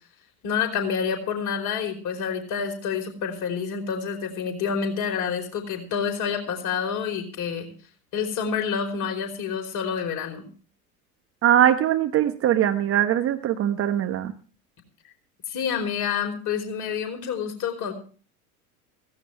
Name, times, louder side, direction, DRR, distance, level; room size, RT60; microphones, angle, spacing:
voice 1, 0.4-7.7 8.1-10.5 15.5-17.9, left 7 dB, 40° left, 4 dB, 4.7 m, -28 dB
voice 2, 11.4-14.3, right 11 dB, 30° right, 8 dB, 1.2 m, -21 dB
16.5 x 16.0 x 3.4 m, 0.39 s
figure-of-eight pair, 80°, 44 cm